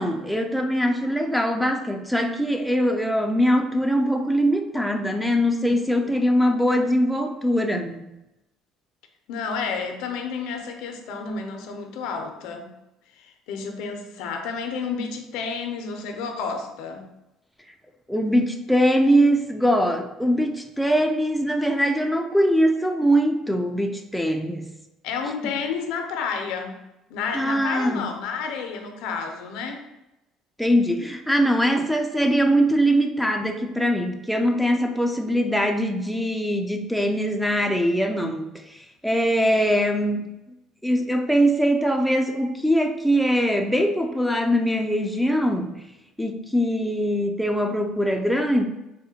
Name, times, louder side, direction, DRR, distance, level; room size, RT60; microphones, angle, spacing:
voice 1, 0.0-8.1 18.1-24.7 25.4-25.5 27.3-28.1 30.6-40.3 40.8-45.7 46.2-48.6, equal, ahead, 4 dB, 0.3 m, -22 dB
voice 2, 9.3-12.7 13.2-17.1 25.0-26.8 27.1-29.8, left 5 dB, 75° left, 4 dB, 0.4 m, -31 dB
3.6 x 2.1 x 2.8 m, 0.93 s
supercardioid pair, 90°, 0 cm